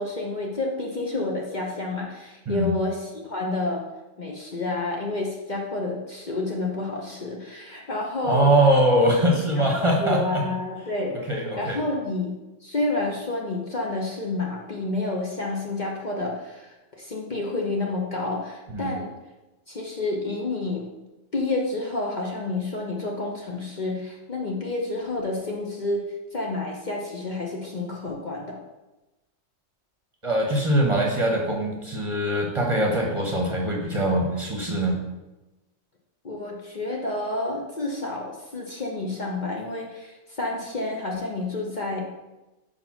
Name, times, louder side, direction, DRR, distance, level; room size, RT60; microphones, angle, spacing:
voice 1, 0.0-3.8 4.2-8.5 9.5-11.2 11.6-19.1 19.7-20.9 21.3-26.0 26.3-28.6 36.2-42.0, left 2 dB, 40° left, -1 dB, 0.9 m, -29 dB
voice 2, 8.2-10.4 11.3-11.8 18.7-18.9 30.2-35.0, right 1 dB, 25° right, -1 dB, 1.0 m, -22 dB
5.3 x 4.7 x 5.7 m, 1.0 s
omnidirectional pair, 1.3 m